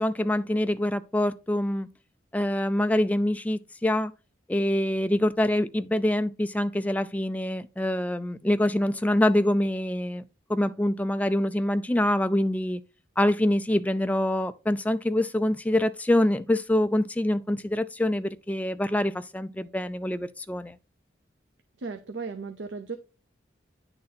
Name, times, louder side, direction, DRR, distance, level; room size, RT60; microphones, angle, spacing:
voice 1, 0.0-1.9 2.3-4.1 4.5-10.2 10.5-12.8 13.2-20.8, left 1 dB, 10° left, 0.3 m, -25 dB
voice 2, 21.8-23.0, right 4 dB, 75° right, 0.6 m, -35 dB
9.6 x 3.9 x 4.2 m
head